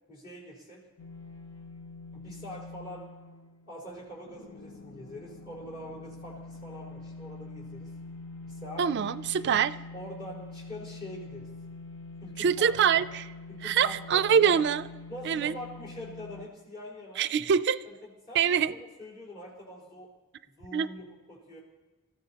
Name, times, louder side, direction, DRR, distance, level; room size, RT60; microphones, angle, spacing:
voice 1, 0.1-0.8 2.1-3.1 3.7-7.9 8.5-8.9 9.9-11.5 12.2-13.1 13.5-14.6 15.1-17.3 17.8-20.1 20.6-21.6, equal, 50° left, -6 dB, 4.5 m, -44 dB
sound 1, 1.0-16.5, left 3 dB, 70° left, 0.8 m, -45 dB
voice 2, 8.8-9.8 12.4-13.2 13.6-14.8 15.2-15.5 17.2-17.8 18.3-18.7 20.7-20.9, right 7 dB, 55° right, 15 dB, 0.4 m, -24 dB
25.5 x 14.5 x 2.9 m, 1.1 s
head